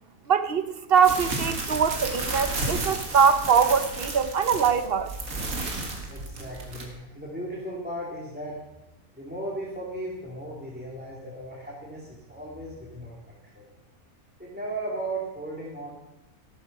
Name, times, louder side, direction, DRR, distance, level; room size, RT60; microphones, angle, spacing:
voice 1, 0.3-5.1, right 6 dB, 45° right, 12 dB, 0.9 m, -22 dB
sound 1, 1.0-6.8, right 2 dB, 65° right, 2.5 m, -32 dB
voice 2, 6.1-8.6 9.1-13.7 14.4-15.9, right 1 dB, 5° right, -5 dB, 2.6 m, -36 dB
13.5 x 13.0 x 5.4 m, 0.90 s
omnidirectional pair, 1.6 m